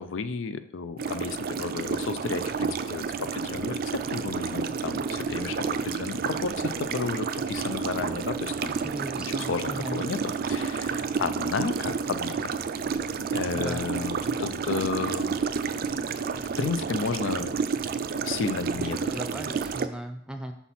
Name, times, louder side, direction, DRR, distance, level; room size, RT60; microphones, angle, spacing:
voice 1, 0.0-8.8 9.2-12.5 13.3-15.3 16.6-17.5 18.1-19.2, left 5 dB, 85° left, 11 dB, 0.5 m, -32 dB
sound 1, 1.0-19.9, right 5 dB, 50° right, 0.4 m, -30 dB
voice 2, 8.8-10.0 13.5-13.8 19.1-20.5, right 1 dB, 5° right, 6 dB, 0.6 m, -37 dB
5.8 x 5.7 x 4.2 m, 0.68 s
head